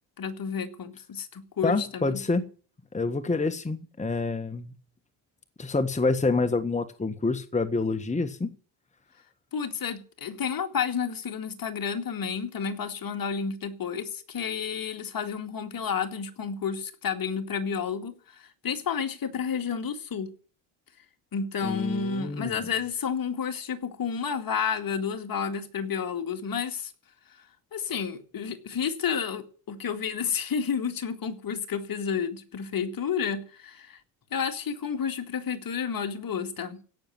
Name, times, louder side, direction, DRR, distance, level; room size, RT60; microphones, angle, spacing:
voice 1, 0.2-2.2 9.5-20.3 21.3-26.9 27.7-34.0 34.3-36.8, left 6 dB, 45° left, 2.4 m, -31 dB
voice 2, 1.6-2.4 2.9-4.7 5.6-8.5 21.6-22.6, left 3 dB, 15° left, 1.4 m, -27 dB
17.0 x 6.9 x 9.5 m
supercardioid pair, 75°, 47 cm